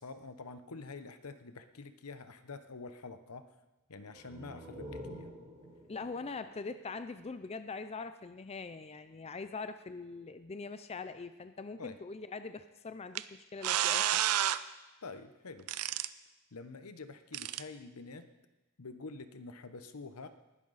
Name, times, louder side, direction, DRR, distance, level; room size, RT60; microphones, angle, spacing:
voice 1, 0.0-3.5 3.9-5.3 11.8-11.9 15.0-15.7 16.5-18.3 18.8-20.3, left 3 dB, 80° left, 10 dB, 0.9 m, -47 dB
sound 1, 4.1-7.6, equal, 15° right, 4.0 m, -49 dB
voice 2, 5.9-13.3 13.5-14.2, left 4 dB, 30° left, 10 dB, 0.5 m, -42 dB
sound 2, 13.1-13.2 13.6-14.6 15.7-16.1 17.3-17.6, right 11 dB, 80° right, 0.5 m, -30 dB
19.5 x 11.5 x 4.1 m, 1.1 s
head